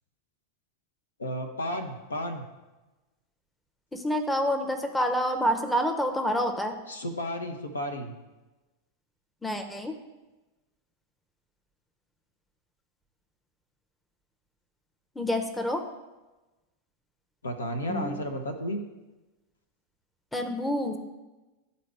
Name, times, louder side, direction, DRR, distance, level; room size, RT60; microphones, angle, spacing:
voice 1, 1.2-2.4 6.9-8.1 17.4-18.8, equal, 75° left, 5 dB, 0.8 m, -33 dB
voice 2, 3.9-6.8 9.4-9.9 15.2-15.8 17.9-18.2 20.3-21.0, equal, 5° left, 5 dB, 0.7 m, -28 dB
12.0 x 4.1 x 3.3 m, 1.1 s
figure-of-eight pair, 90°, 0 cm